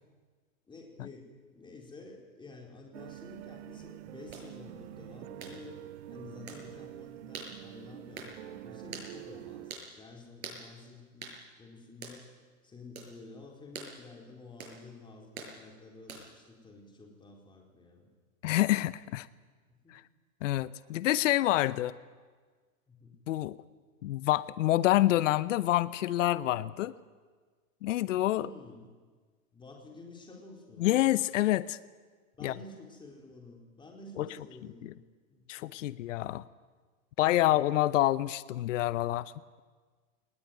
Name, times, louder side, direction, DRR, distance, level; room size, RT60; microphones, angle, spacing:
voice 1, 0.7-5.8 6.1-11.3 11.6-12.3 12.6-18.1 19.7-20.0 22.9-23.1 28.4-28.8 29.5-30.9 32.3-34.9 35.3-35.5 35.7-35.9, left 3 dB, 10° left, 1 dB, 4.3 m, -50 dB
sound 1, 2.9-9.7, right 15 dB, 50° right, 0.7 m, -46 dB
sound 2, 4.3-4.5 5.4-5.6 6.5-6.6 7.3-7.5 8.2-8.3 8.9-9.1 9.7-9.9 10.4-10.6 11.2-11.4 12.0-12.2 13.0-13.1 13.7-13.9 14.6-14.8 15.4-15.5 16.1-16.4, right 5 dB, 80° right, 6.8 m, -43 dB
voice 2, 18.4-19.3 19.9-20.0 20.4-21.9 23.3-23.6 24.0-26.9 27.8-28.5 30.8-31.8 32.4-32.5 34.2-34.3 34.8-34.9 35.5-36.4 37.2-39.3, left 15 dB, 60° left, 17 dB, 0.9 m, -27 dB
20.5 x 20.0 x 9.4 m, 1.5 s
hypercardioid pair, 135°, 42 cm